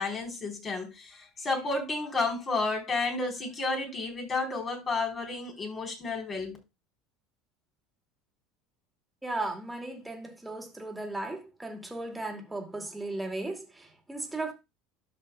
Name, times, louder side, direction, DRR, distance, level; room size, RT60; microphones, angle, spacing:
voice 1, 0.0-6.6, left 3 dB, 35° left, 4.0 m, -31 dB
voice 2, 9.2-14.5, right 2 dB, 10° right, 2.4 m, -36 dB
12.5 x 6.2 x 2.3 m
hypercardioid pair, 80°, 0 cm